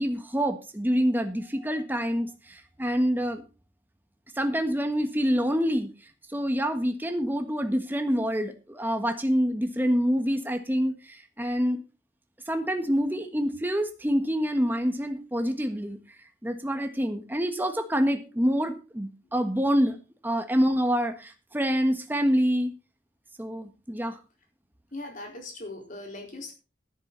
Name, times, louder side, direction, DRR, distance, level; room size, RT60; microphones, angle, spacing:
voice 1, 0.0-3.4 4.3-5.9 6.3-11.8 12.5-16.0 16.4-20.0 20.2-22.7 23.4-24.2, equal, 10° right, 6 dB, 1.5 m, -26 dB
voice 2, 24.9-26.5, left 2 dB, 45° left, 2 dB, 4.3 m, -39 dB
12.0 x 11.0 x 4.0 m, 0.32 s
head